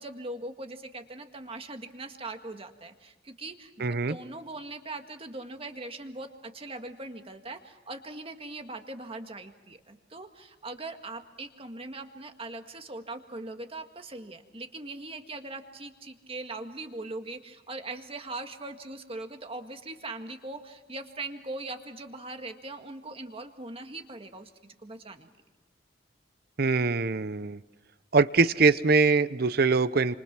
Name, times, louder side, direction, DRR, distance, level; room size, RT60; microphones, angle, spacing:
voice 1, 0.0-25.3, right 2 dB, 30° right, 6 dB, 1.8 m, -40 dB
voice 2, 3.8-4.2 26.6-27.6 28.1-30.2, right 4 dB, 55° right, 15 dB, 0.8 m, -23 dB
29.0 x 26.5 x 6.0 m, 1.1 s
head